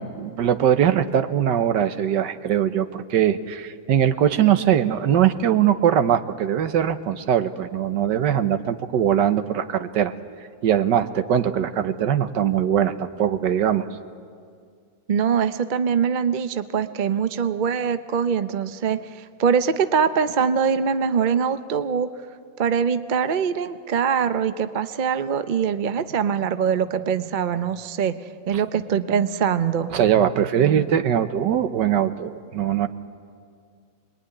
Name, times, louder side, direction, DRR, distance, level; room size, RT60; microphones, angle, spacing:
voice 1, 0.0-10.1 10.6-13.9 29.9-32.9, right 9 dB, 75° right, 10 dB, 1.5 m, -21 dB
voice 2, 15.1-22.1 22.6-28.2 28.5-29.9, right 7 dB, 50° right, 10 dB, 0.5 m, -23 dB
26.0 x 21.0 x 9.9 m, 2.2 s
omnidirectional pair, 1.9 m